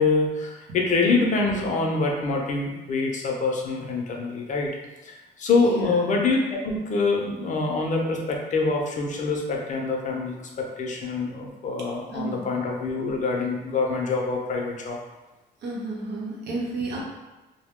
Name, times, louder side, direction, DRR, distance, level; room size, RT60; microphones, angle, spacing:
voice 1, 0.0-4.7 5.0-15.0, left 3 dB, 45° left, 0 dB, 0.5 m, -25 dB
voice 2, 5.5-5.9 12.1-12.4 15.6-17.0, right 2 dB, 85° right, -3 dB, 0.8 m, -31 dB
2.6 x 2.1 x 3.5 m, 1.1 s
cardioid pair, 145°, 17 cm